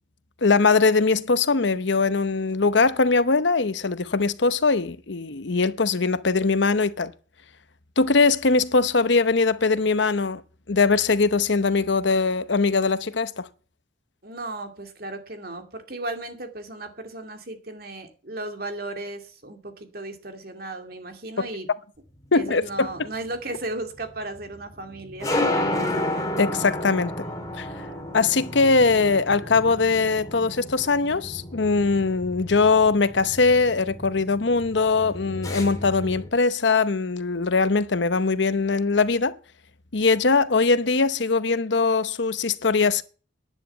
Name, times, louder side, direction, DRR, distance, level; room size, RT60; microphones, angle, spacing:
voice 1, 0.4-7.1 8.0-10.4 10.7-13.5 21.4-21.5 22.3-22.9 26.4-27.1 27.6-27.9 28.1-39.4 39.9-43.0, left 4 dB, 70° left, 0.9 m, -21 dB
voice 2, 14.2-21.7 22.3-25.3, right 2 dB, 50° right, 2.5 m, -35 dB
sound 1, 22.2-36.3, left 1 dB, 20° left, 2.5 m, -32 dB
11.0 x 9.3 x 8.1 m
head